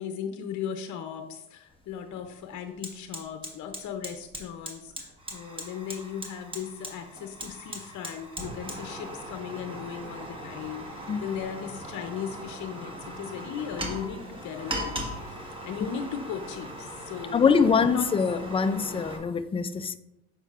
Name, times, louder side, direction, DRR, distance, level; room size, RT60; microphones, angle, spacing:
voice 1, 0.0-17.5 17.9-18.1, left 8 dB, 55° left, 0.7 m, -37 dB
Fire, 1.7-1.8 2.2-19.2, right 1 dB, 15° right, 1.4 m, -39 dB
voice 2, 17.3-20.0, left 5 dB, 15° left, 0.3 m, -24 dB
7.0 x 5.5 x 2.4 m
supercardioid pair, 80°, 35 cm